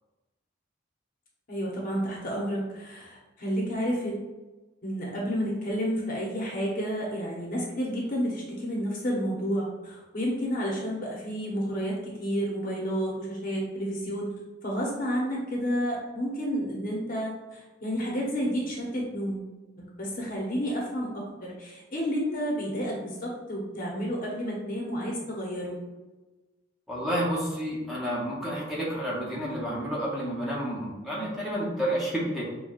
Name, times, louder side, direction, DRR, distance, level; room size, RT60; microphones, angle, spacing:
voice 1, 1.5-4.2 4.8-14.3 14.6-19.4 19.8-25.8, equal, 45° left, -3 dB, 0.8 m, -30 dB
voice 2, 26.9-32.4, equal, ahead, -7 dB, 0.8 m, -30 dB
5.7 x 2.2 x 2.4 m, 1.2 s
head